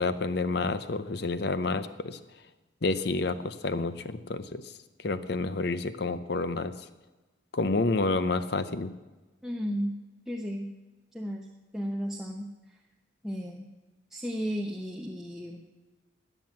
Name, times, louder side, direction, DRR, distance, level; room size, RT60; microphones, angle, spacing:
voice 1, 0.0-2.2 2.8-4.6 5.0-6.7 7.5-8.9, left 3 dB, 55° left, 12 dB, 0.7 m, -29 dB
voice 2, 9.4-9.9 10.3-10.7 11.1-11.5 11.7-12.8 13.2-13.7 14.1-15.6, equal, ahead, 0 dB, 0.8 m, -34 dB
13.5 x 9.2 x 7.4 m, 1.2 s
head